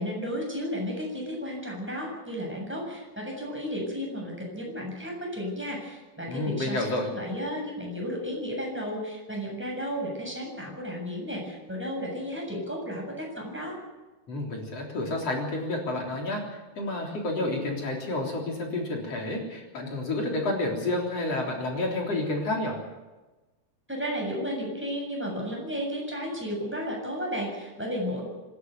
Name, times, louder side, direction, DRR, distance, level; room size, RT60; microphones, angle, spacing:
voice 1, 0.0-13.8 23.9-28.2, equal, 5° right, -1 dB, 7.1 m, -33 dB
voice 2, 6.3-7.1 14.3-22.8, left 2 dB, 40° left, 0 dB, 4.5 m, -30 dB
26.0 x 12.0 x 9.4 m, 1.2 s
omnidirectional pair, 4.5 m